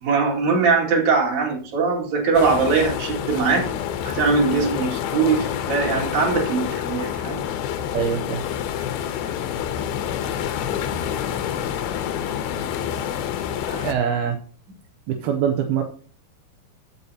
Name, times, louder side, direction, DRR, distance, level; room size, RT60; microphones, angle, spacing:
voice 1, 0.0-3.7 4.0-7.4 13.7-13.9, right 4 dB, 55° right, -1 dB, 3.5 m, -21 dB
sound 1, 2.3-13.9, left 9 dB, 80° left, 2.8 m, -28 dB
voice 2, 7.9-8.4 13.8-14.4 15.1-15.8, right 8 dB, 80° right, 4 dB, 2.7 m, -23 dB
15.0 x 6.9 x 2.8 m, 0.41 s
omnidirectional pair, 4.4 m